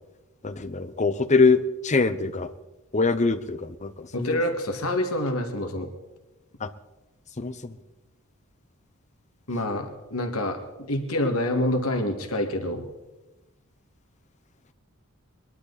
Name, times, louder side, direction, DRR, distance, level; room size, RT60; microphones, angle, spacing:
voice 1, 0.4-2.5 2.9-4.4 6.6-6.7 7.4-7.8, left 4 dB, 35° left, 11 dB, 0.8 m, -23 dB
voice 2, 4.1-5.9 9.5-12.9, left 1 dB, 85° left, 5 dB, 2.0 m, -27 dB
21.0 x 12.0 x 4.1 m, 1.1 s
head